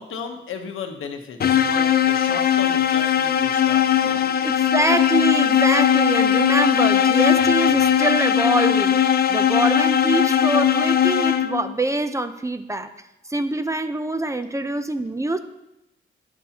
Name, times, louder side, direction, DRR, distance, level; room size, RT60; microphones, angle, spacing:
voice 1, 0.0-4.1, left 6 dB, 80° left, 5 dB, 1.0 m, -35 dB
sound 1, 1.4-11.7, left 9 dB, 50° left, 0.5 m, -19 dB
voice 2, 4.4-12.9 13.3-15.4, right 1 dB, 15° right, 9 dB, 0.5 m, -24 dB
10.5 x 7.2 x 2.8 m, 0.88 s
cardioid pair, 80°, 20 cm